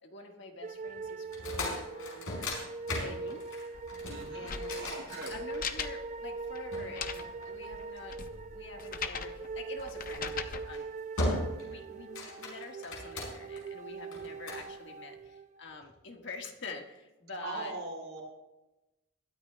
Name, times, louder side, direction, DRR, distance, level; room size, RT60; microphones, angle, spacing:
voice 1, 0.0-2.5 3.0-3.4 4.3-5.0 5.3-10.9 11.6-17.7, left 2 dB, 60° left, 3 dB, 1.6 m, -46 dB
sound 1, 0.6-15.7, right 4 dB, 35° right, 0.4 m, -42 dB
sound 2, 1.3-6.0 6.7-8.0 9.8-10.1 10.6-10.8 11.2-11.7 12.0-13.6 14.1-14.7, left 1 dB, 85° left, 5.3 m, -37 dB
sound 3, 3.7-10.7, left 6 dB, 40° left, 0.7 m, -41 dB
voice 2, 4.0-5.3 17.4-18.4, right 2 dB, 75° right, -2 dB, 5.6 m, -41 dB
22.0 x 13.0 x 2.3 m, 1.0 s
head